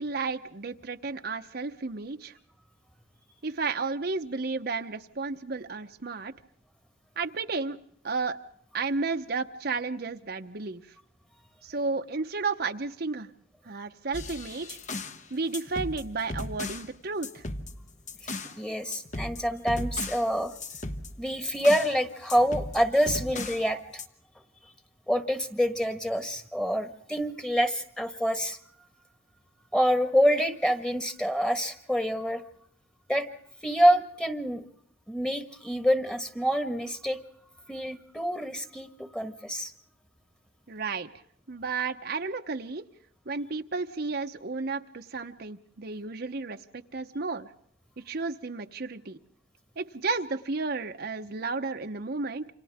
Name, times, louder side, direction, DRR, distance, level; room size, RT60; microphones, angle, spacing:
voice 1, 0.0-2.3 3.4-6.3 7.2-7.8 8.0-8.4 8.7-10.8 11.6-13.3 13.7-14.8 15.3-17.4 40.7-41.1 41.5-42.9 43.3-47.5 48.1-49.2 49.8-52.4, right 4 dB, 55° right, 6 dB, 0.9 m, -32 dB
sound 1, 14.1-15.2 15.5-16.9 17.2-18.6 18.9-22.0 22.3-23.7 24.0-24.1, left 2 dB, 40° left, 1.2 m, -37 dB
voice 2, 18.2-20.5 21.2-24.0 25.1-28.6 29.7-32.4 33.1-33.3 33.6-34.6 35.1-37.2 37.7-39.7, equal, 5° left, 8 dB, 1.5 m, -26 dB
29.0 x 26.0 x 3.6 m, 0.63 s
head